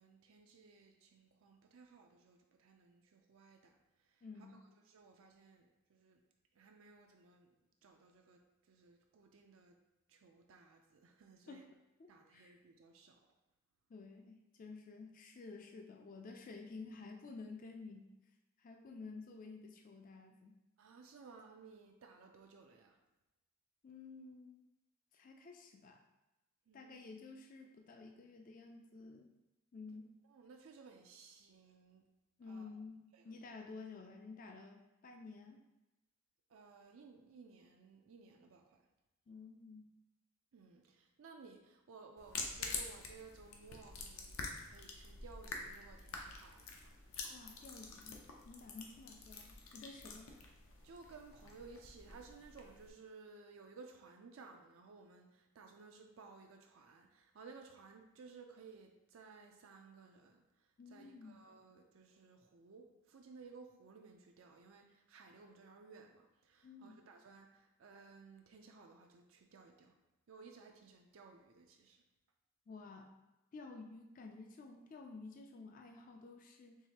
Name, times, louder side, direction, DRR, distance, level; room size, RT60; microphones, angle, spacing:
voice 1, 0.0-3.8 4.1-4.2 4.8-6.2 6.6-7.5 7.8-8.4 8.7-9.8 10.1-11.7 12.1-13.2 20.8-23.0 26.7-27.0 30.3-32.0 32.5-32.7 33.1-33.2 36.5-38.8 40.5-44.4 44.6-47.0 50.8-60.4 60.9-69.9 70.3-72.0, right 4 dB, 70° right, 3 dB, 0.4 m, -58 dB
voice 2, 4.2-4.7 11.5-11.7 12.0-12.6 13.9-18.1 18.6-20.6 23.8-24.7 25.1-26.0 26.7-29.3 29.7-30.1 32.4-35.6 39.3-39.9 47.3-50.3 60.8-61.5 66.6-67.1 72.7-73.1 73.5-76.8, left 4 dB, 40° left, 3 dB, 0.3 m, -52 dB
sound 1, 42.2-52.9, left 4 dB, 80° left, 0.7 m, -47 dB
4.7 x 3.5 x 2.9 m, 1.0 s
head